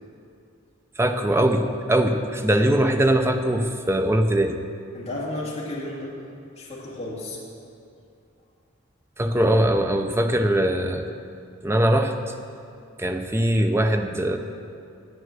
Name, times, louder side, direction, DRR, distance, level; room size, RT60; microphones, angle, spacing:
voice 1, 1.0-4.6 9.2-11.1 11.6-12.1 13.0-14.4, right 1 dB, 10° right, 6 dB, 0.5 m, -21 dB
voice 2, 4.9-6.1 6.6-7.4, left 1 dB, 30° left, -7 dB, 1.9 m, -32 dB
7.9 x 7.8 x 7.6 m, 2.5 s
head